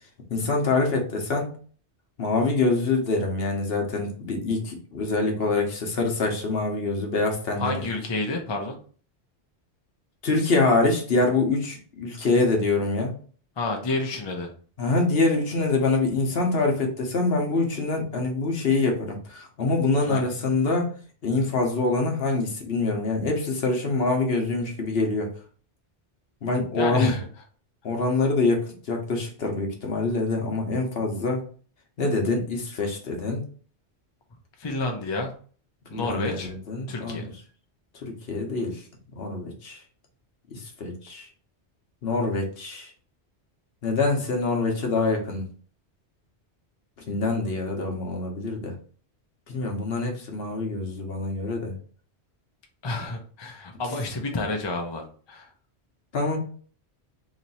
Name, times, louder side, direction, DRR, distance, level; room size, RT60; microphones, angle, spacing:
voice 1, 0.3-1.5 2.2-7.7 10.2-13.1 14.8-20.9 21.2-25.3 26.4-27.1 27.8-31.4 32.0-33.4 35.9-37.2 38.0-38.8 39.2-39.8 40.5-41.3 42.0-42.9 43.8-45.5 47.1-48.7 49.5-51.7 56.1-56.4, left 3 dB, 65° left, 2 dB, 1.1 m, -25 dB
voice 2, 7.6-8.8 13.6-14.5 20.1-20.3 26.7-27.3 34.6-35.3 35.9-36.5 36.9-37.3 52.8-55.5, left 2 dB, 30° left, 2 dB, 0.6 m, -29 dB
3.1 x 2.8 x 4.1 m, 0.43 s
omnidirectional pair, 1.1 m